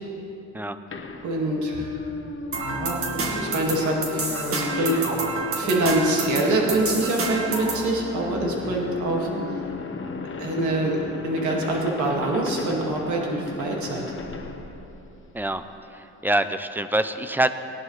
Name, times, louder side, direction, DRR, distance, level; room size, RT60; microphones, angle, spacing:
sound 1, 0.9-15.6, left 4 dB, 40° left, 1.1 m, -34 dB
voice 1, 1.2-2.1 2.7-3.1 3.3-5.0 5.6-9.3 10.4-14.0, right 2 dB, 75° right, -1 dB, 2.0 m, -25 dB
sound 2, 2.5-7.9, right 3 dB, 45° right, 1.9 m, -29 dB
voice 2, 4.6-5.0 15.3-15.6 15.9-17.5, right 1 dB, 5° right, 10 dB, 0.5 m, -26 dB
18.5 x 11.0 x 3.2 m, 2.8 s
cardioid pair, 90°, 30 cm